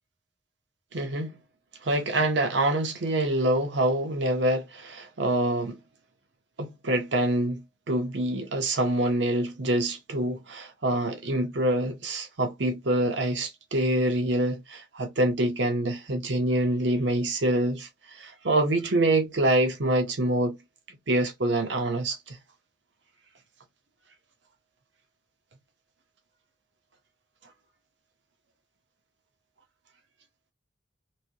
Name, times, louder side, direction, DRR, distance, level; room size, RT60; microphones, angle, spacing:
voice 1, 0.9-1.3 1.8-5.8 6.6-7.6 7.9-20.6 21.1-22.4, right 1 dB, 65° right, 0.8 m, -26 dB
3.3 x 2.6 x 2.7 m
head